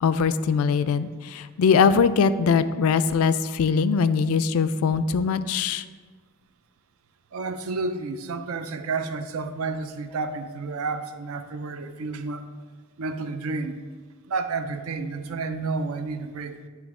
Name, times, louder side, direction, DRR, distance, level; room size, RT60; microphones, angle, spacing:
voice 1, 0.0-5.8, left 5 dB, 75° left, 12 dB, 0.3 m, -21 dB
voice 2, 7.3-12.4 13.0-13.8 14.3-16.6, right 3 dB, 75° right, 9 dB, 0.4 m, -30 dB
9.2 x 3.4 x 3.6 m, 1.5 s
head